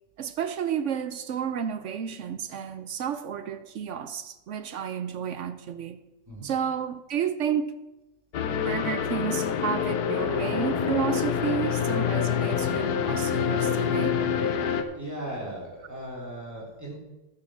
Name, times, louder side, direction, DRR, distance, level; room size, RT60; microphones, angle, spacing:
voice 1, 0.2-6.0 6.4-7.7 8.6-14.1, right 8 dB, 65° right, 0.8 m, -31 dB
sound 1, 8.3-14.8, left 7 dB, 80° left, 1.4 m, -26 dB
voice 2, 14.9-16.9, right 1 dB, 10° right, 3.6 m, -37 dB
11.5 x 7.4 x 6.2 m
omnidirectional pair, 1.7 m